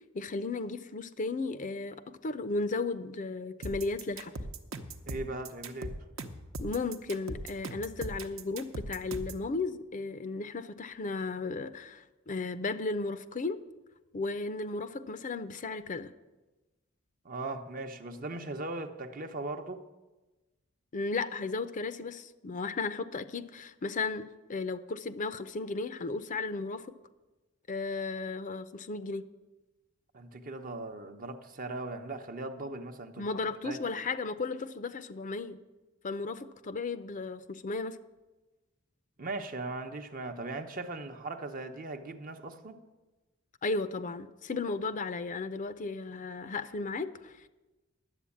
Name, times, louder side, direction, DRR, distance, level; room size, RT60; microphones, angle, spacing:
voice 1, 0.1-4.3 6.6-13.6 14.1-16.1 20.9-26.9 27.7-29.3 33.2-35.6 36.0-38.0 43.6-47.5, left 3 dB, 40° left, 0.5 m, -35 dB
sound 1, 3.6-9.4, right 2 dB, 70° right, 0.9 m, -39 dB
voice 2, 5.1-5.9 17.2-19.8 30.1-33.2 33.6-33.8 39.2-42.8, right 2 dB, 45° right, 0.8 m, -39 dB
11.0 x 7.9 x 8.5 m
head